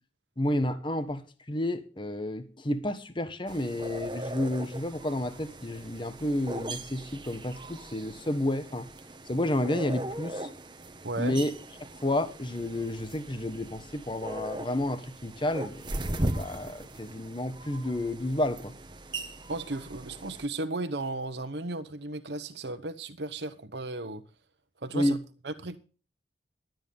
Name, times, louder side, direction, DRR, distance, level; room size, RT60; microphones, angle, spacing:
voice 1, 0.4-8.9 9.3-10.5 11.2-11.5 12.0-18.7 24.9-25.2, left 1 dB, 30° left, 1.2 m, -31 dB
sound 1, 3.5-20.5, right 1 dB, 25° right, 1.2 m, -39 dB
voice 2, 11.0-11.4 19.5-24.2 24.8-25.2 25.4-25.8, right 2 dB, 75° right, 1.1 m, -35 dB
12.5 x 9.1 x 5.4 m
head